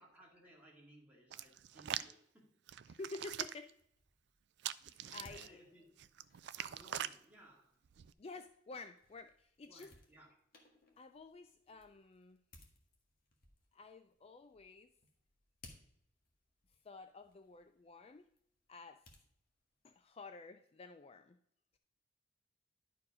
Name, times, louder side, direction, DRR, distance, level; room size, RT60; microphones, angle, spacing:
voice 1, 0.0-2.5 4.8-6.0 6.6-7.8 9.7-10.4 11.7-11.8, right 1 dB, 10° right, -3 dB, 2.2 m, -62 dB
Hands, 1.3-2.1 2.7-3.7 4.6-5.5 6.0-7.2 7.9-8.1, right 11 dB, 65° right, 0.4 m, -43 dB
voice 2, 2.9-3.7 4.8-5.6 8.2-9.9 11.0-12.4 13.7-14.9 16.8-18.3 18.7-19.0 19.8-21.4, left 3 dB, 35° left, 8 dB, 0.4 m, -51 dB
sound 1, 3.6-20.1, left 2 dB, 50° left, 1.7 m, -66 dB
11.0 x 4.7 x 4.9 m, 0.71 s
head